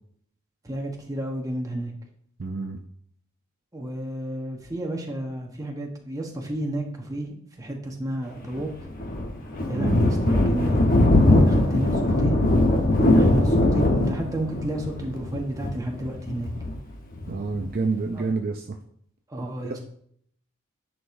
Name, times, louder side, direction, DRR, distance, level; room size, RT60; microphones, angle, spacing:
voice 1, 0.6-1.9 3.7-8.7 9.7-10.9 11.4-12.4 13.0-16.5 18.1-18.2 19.3-19.8, right 1 dB, 15° right, 1 dB, 1.0 m, -31 dB
voice 2, 2.4-2.8 9.7-10.0 17.3-18.8, right 4 dB, 45° right, 3 dB, 0.5 m, -28 dB
Thunder, 8.5-17.7, left 1 dB, 40° left, 1.0 m, -21 dB
10.0 x 4.6 x 2.6 m, 0.64 s
head